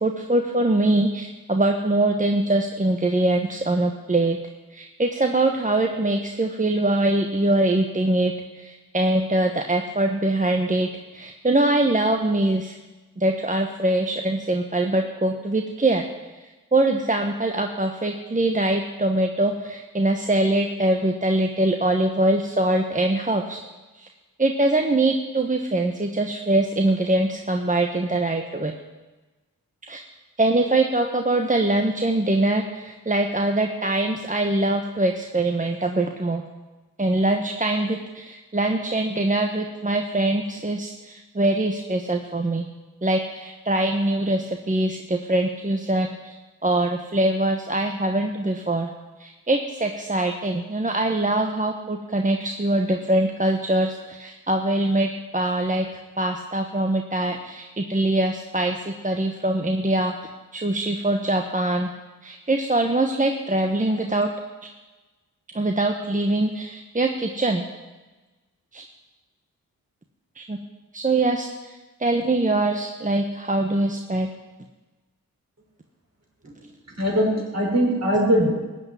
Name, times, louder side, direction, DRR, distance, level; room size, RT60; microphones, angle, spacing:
voice 1, 0.0-4.4 4.7-12.7 13.2-16.0 16.7-23.6 24.0-24.1 24.4-28.7 29.9-30.0 30.4-36.4 37.0-42.7 43.0-46.3 46.6-48.9 49.2-55.9 56.2-60.1 60.5-61.9 62.2-64.3 64.6-64.7 65.5-67.6 68.7-68.8 70.4-70.6 70.9-71.7 72.0-74.3, right 2 dB, 20° right, 3 dB, 1.1 m, -23 dB
voice 2, 77.0-78.5, equal, 45° right, -2 dB, 5.4 m, -21 dB
14.5 x 6.0 x 9.2 m, 1.2 s
cardioid pair, 50°, 35 cm